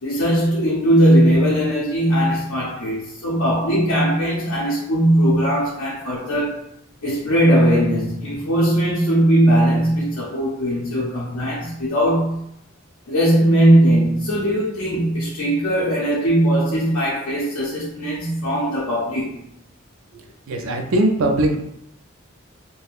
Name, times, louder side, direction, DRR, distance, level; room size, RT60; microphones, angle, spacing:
voice 1, 0.0-6.6 7.0-12.5 13.1-19.4, right 1 dB, 75° left, 0.6 m, -19 dB
voice 2, 20.5-21.6, right 1 dB, 75° right, 0.4 m, -19 dB
3.4 x 2.2 x 2.4 m
head